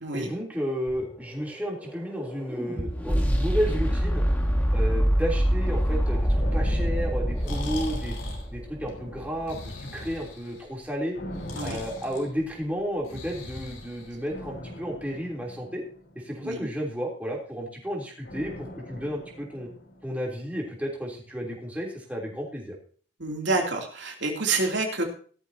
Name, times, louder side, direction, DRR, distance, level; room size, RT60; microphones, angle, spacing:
voice 1, 0.1-4.2 4.7-8.1 8.5-11.2 11.6-15.8 16.1-19.7 20.0-22.7, equal, 10° right, -2 dB, 3.3 m, -32 dB
sound 1, 0.9-9.0, equal, 10° left, 1.9 m, -26 dB
sound 2, 6.4-8.3 8.8-10.1 11.1-12.9 14.2-16.6 18.2-20.4 20.7-20.8, equal, 60° left, 4.0 m, -42 dB
Breathing, 7.2-14.6, left 2 dB, 85° left, 4.3 m, -41 dB
voice 2, 23.2-25.0, right 3 dB, 70° right, 1 dB, 2.9 m, -28 dB
16.5 x 13.0 x 2.9 m, 0.44 s
head